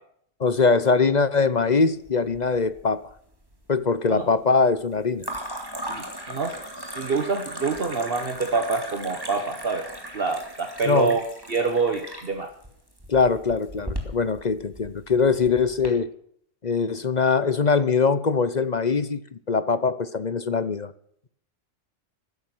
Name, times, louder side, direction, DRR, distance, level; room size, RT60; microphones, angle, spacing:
voice 1, 0.4-3.0 3.7-5.3 10.9-11.1 13.1-16.1 16.6-20.9, left 4 dB, 40° left, 0.9 m, -22 dB
sound 1, 2.1-2.8 3.1-3.7 5.2-15.9, right 1 dB, 20° right, 3.4 m, -37 dB
voice 2, 5.9-9.9 10.1-11.2 11.5-12.5, right 4 dB, 50° right, 1.6 m, -26 dB
16.0 x 13.0 x 6.2 m
omnidirectional pair, 1.3 m